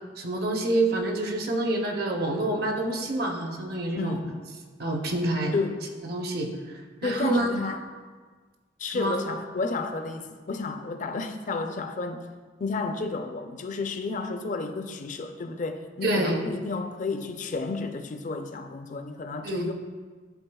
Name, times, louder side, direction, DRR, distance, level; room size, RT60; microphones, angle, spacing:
voice 1, 0.2-4.2 4.8-5.5 6.0-7.5 8.9-9.2 16.0-16.4 19.4-19.7, right 2 dB, 55° right, 2 dB, 0.7 m, -27 dB
voice 2, 3.9-4.4 5.5-5.8 7.0-7.8 8.8-12.2 12.6-19.7, left 3 dB, 40° left, 7 dB, 0.4 m, -31 dB
10.5 x 4.1 x 2.2 m, 1.5 s
head